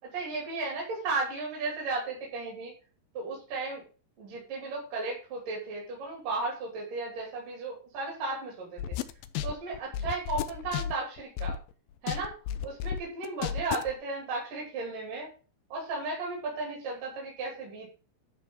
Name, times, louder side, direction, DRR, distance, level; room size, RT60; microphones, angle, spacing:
voice 1, 0.0-2.7 3.1-3.8 4.2-9.0 9.4-11.6 12.0-12.4 12.6-15.3 15.7-17.9, right 3 dB, 55° right, -3 dB, 4.2 m, -35 dB
sound 1, 8.8-11.7 12.1-13.9, left 9 dB, 80° left, 2.1 m, -33 dB
12.5 x 4.7 x 5.4 m, 0.36 s
omnidirectional pair, 4.7 m